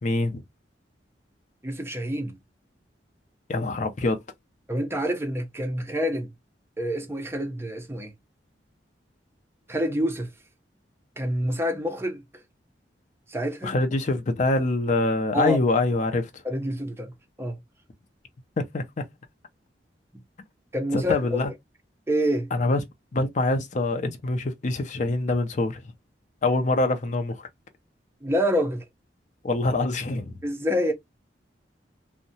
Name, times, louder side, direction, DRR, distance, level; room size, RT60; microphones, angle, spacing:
voice 1, 0.0-0.4 3.5-4.2 13.6-16.4 18.6-18.8 20.9-21.5 22.5-22.8 23.1-25.8 26.4-27.5 29.4-30.4, left 2 dB, 45° left, 0.5 m, -25 dB
voice 2, 1.6-2.4 4.7-6.3 6.8-8.1 9.7-10.3 11.2-12.2 13.3-13.7 15.3-15.6 16.4-17.6 20.7-21.4 22.1-22.5 28.2-28.9 30.4-30.9, equal, 15° right, 0.5 m, -27 dB
2.7 x 2.1 x 2.6 m
head